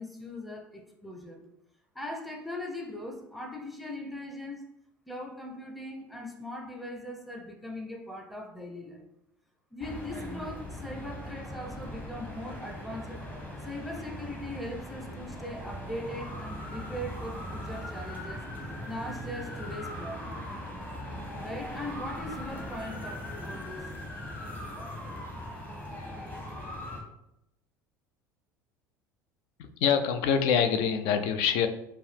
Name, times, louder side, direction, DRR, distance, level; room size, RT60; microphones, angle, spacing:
voice 1, 0.0-1.4 1.9-4.7 5.1-9.1 9.7-13.2 13.6-18.4 18.9-20.4 21.4-23.8, left 1 dB, ahead, 1 dB, 0.6 m, -40 dB
sound 1, 9.8-27.0, equal, 15° left, 1.1 m, -40 dB
voice 2, 29.6-31.7, left 7 dB, 55° left, 8 dB, 0.4 m, -25 dB
4.5 x 2.4 x 3.3 m, 0.84 s
figure-of-eight pair, 70°, 10 cm